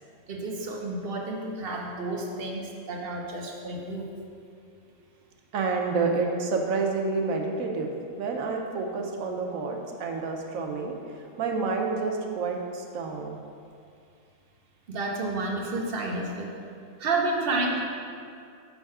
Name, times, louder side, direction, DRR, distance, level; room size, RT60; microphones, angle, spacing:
voice 1, 0.3-4.1 14.9-16.5 17.0-17.8, right 2 dB, 55° right, 0 dB, 0.7 m, -30 dB
voice 2, 5.5-7.9 8.2-13.4, right 4 dB, 75° right, 2 dB, 1.1 m, -29 dB
6.1 x 3.5 x 5.4 m, 2.4 s
omnidirectional pair, 1.5 m